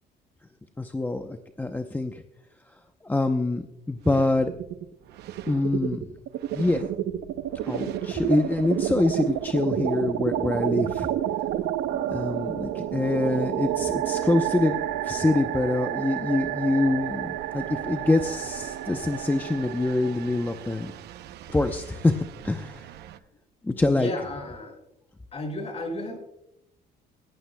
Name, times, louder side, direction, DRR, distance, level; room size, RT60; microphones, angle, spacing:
voice 1, 0.8-2.2 3.0-4.5 5.5-6.1 6.5-6.8 7.7-11.1 12.1-14.7 15.0-20.9 21.5-22.1 22.4-22.9 23.6-24.1, left 2 dB, 10° left, 6 dB, 0.7 m, -25 dB
sound 1, 4.0-4.8 5.1-23.2, right 11 dB, 75° right, 0.7 m, -31 dB
voice 2, 23.9-24.8 25.3-26.2, left 1 dB, 35° left, 2 dB, 6.3 m, -33 dB
18.0 x 17.5 x 2.3 m, 0.81 s
cardioid pair, 110°, 17 cm